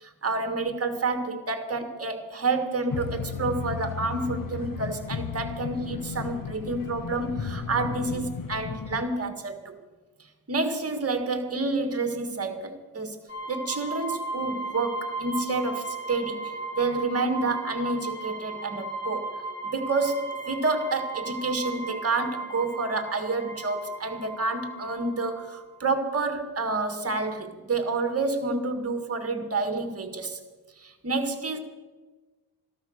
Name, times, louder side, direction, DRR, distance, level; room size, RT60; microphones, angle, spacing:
voice 1, 0.0-9.8 10.5-13.2 13.5-19.3 19.7-30.4 30.8-31.6, right 3 dB, 30° right, 7 dB, 1.7 m, -29 dB
sound 1, 2.9-9.0, left 6 dB, 45° left, 0.9 m, -34 dB
sound 2, 13.3-25.8, right 3 dB, 25° left, 3.4 m, -36 dB
13.5 x 13.0 x 6.4 m, 1.3 s
wide cardioid pair, 120°, 46 cm